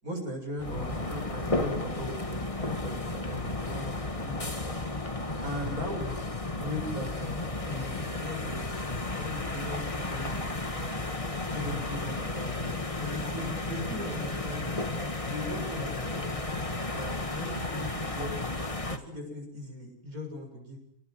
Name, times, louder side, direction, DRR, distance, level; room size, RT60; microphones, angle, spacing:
voice 1, 0.0-4.5 5.4-6.1 6.4-10.9 11.4-12.7 13.0-14.7 15.3-16.7 16.9-18.3 18.9-20.8, left 1 dB, 75° right, 2 dB, 7.8 m, -39 dB
sound 1, 0.6-19.0, left 2 dB, 25° left, 1.8 m, -33 dB
28.0 x 19.5 x 7.8 m, 0.72 s
omnidirectional pair, 1.5 m